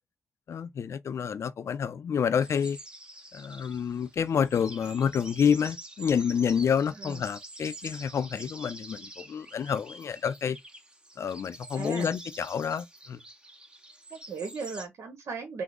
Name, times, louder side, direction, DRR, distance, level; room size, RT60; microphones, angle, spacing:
voice 1, 0.5-2.8 3.3-10.6 11.2-13.2, left 7 dB, 70° left, 0.3 m, -28 dB
sound 1, 2.4-14.9, right 1 dB, 20° right, 0.7 m, -47 dB
voice 2, 11.7-12.1 14.1-15.6, right 4 dB, 80° right, 0.9 m, -37 dB
3.5 x 2.0 x 3.6 m
cardioid pair, 65°, 5 cm